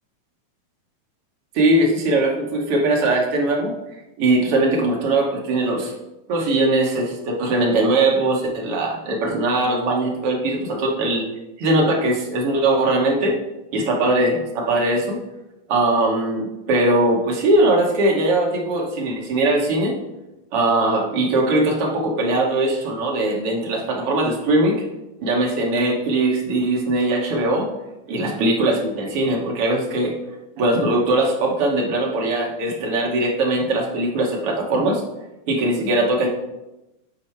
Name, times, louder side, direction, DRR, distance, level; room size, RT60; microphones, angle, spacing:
voice 1, 1.5-3.8 4.2-5.9 6.3-11.3 11.6-13.4 13.7-15.2 15.7-19.9 20.5-24.8 25.2-27.7 28.1-30.1 30.6-35.0 35.5-36.3, right 2 dB, 60° right, -1 dB, 1.6 m, -20 dB
8.1 x 4.3 x 4.4 m, 0.97 s
omnidirectional pair, 3.6 m